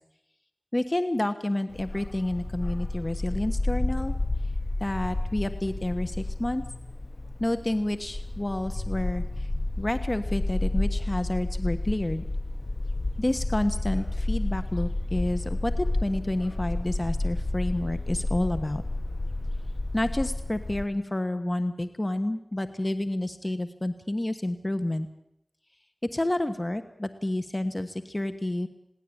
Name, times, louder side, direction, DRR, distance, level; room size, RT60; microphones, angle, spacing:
voice 1, 0.7-4.1 4.8-6.6 7.4-9.5 9.8-12.2 13.2-18.8 19.9-25.1 26.1-28.7, left 1 dB, 35° left, 9 dB, 1.3 m, -29 dB
Bark, 1.7-20.8, left 2 dB, 60° left, 1.1 m, -30 dB
21.0 x 17.5 x 8.8 m, 0.79 s
wide cardioid pair, 45°, 0 cm